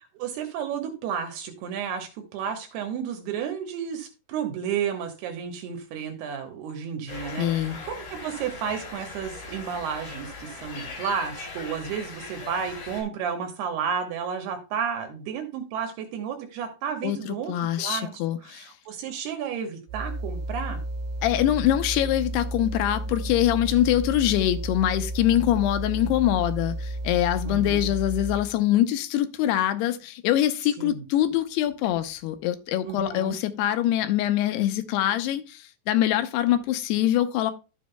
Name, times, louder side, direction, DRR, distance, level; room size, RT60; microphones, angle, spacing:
voice 1, 0.2-17.5 17.8-18.1 18.4-20.8 27.5-27.9 30.8-31.1 32.9-33.4, right 7 dB, 80° right, 3.1 m, -32 dB
sound 1, 7.1-13.0, left 3 dB, 60° left, 4.7 m, -39 dB
voice 2, 7.4-7.8 17.0-18.7 21.2-37.5, left 12 dB, 85° left, 2.8 m, -24 dB
sound 2, 19.9-28.6, right 1 dB, 55° right, 3.7 m, -32 dB
12.5 x 7.3 x 2.2 m
omnidirectional pair, 4.6 m